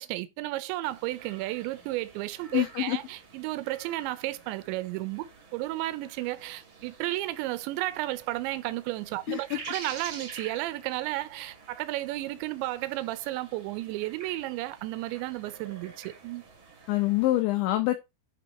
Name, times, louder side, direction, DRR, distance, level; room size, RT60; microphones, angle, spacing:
voice 1, 0.0-16.4, right 17 dB, 80° right, 2.7 m, -33 dB
sound 1, 0.8-17.4, right 4 dB, 55° right, 1.4 m, -49 dB
voice 2, 2.5-3.0 9.3-9.4 16.9-18.0, left 16 dB, 75° left, 3.0 m, -25 dB
11.0 x 4.7 x 4.2 m
omnidirectional pair, 5.8 m